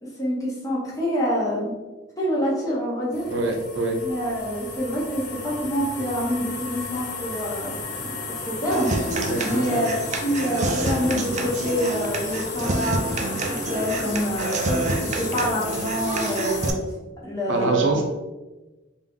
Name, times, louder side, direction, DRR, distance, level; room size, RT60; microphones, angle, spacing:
voice 1, 0.0-1.7 2.2-3.3 4.0-9.0 9.4-9.9 10.2-16.8 17.2-18.0, equal, 20° left, -6 dB, 1.0 m, -27 dB
sound 1, 3.1-16.7, left 3 dB, 55° left, 0.5 m, -34 dB
voice 2, 3.3-4.0 9.3-9.9 17.5-18.0, right 2 dB, 80° right, 2 dB, 0.7 m, -25 dB
Human voice / Acoustic guitar, 8.7-16.7, right 2 dB, 35° right, 0.4 m, -27 dB
3.6 x 2.5 x 3.6 m, 1.1 s
head